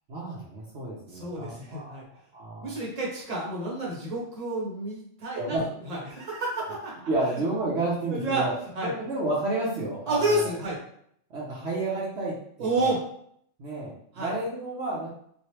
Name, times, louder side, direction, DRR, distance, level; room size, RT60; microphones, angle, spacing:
voice 1, 0.1-2.0 2.3-2.8 5.3-5.6 7.1-8.5 8.8-10.5 11.3-12.9 13.6-15.1, right 2 dB, 60° right, -6 dB, 1.0 m, -31 dB
voice 2, 1.1-2.0 2.6-5.6 5.9-6.9 7.3-7.4 8.0-8.4 8.7-8.9 10.1-10.8 12.6-13.0 14.1-14.3, right 2 dB, 35° right, -4 dB, 1.1 m, -29 dB
3.2 x 2.6 x 2.8 m, 0.67 s
omnidirectional pair, 1.3 m